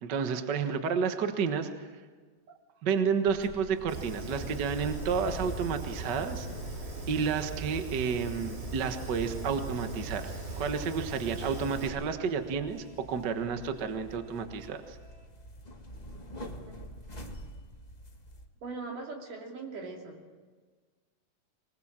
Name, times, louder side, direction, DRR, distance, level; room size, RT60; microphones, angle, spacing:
voice 1, 0.0-1.9 2.8-6.5 7.1-10.3 10.6-15.0, right 6 dB, 55° right, 7 dB, 1.2 m, -31 dB
sound 1, 3.3-18.5, equal, 35° left, 0.6 m, -47 dB
Fire, 3.9-11.9, right 3 dB, 90° right, 6.1 m, -39 dB
voice 2, 18.6-20.3, right 3 dB, 70° right, 1 dB, 4.5 m, -40 dB
24.0 x 20.5 x 7.5 m, 1.5 s
omnidirectional pair, 3.9 m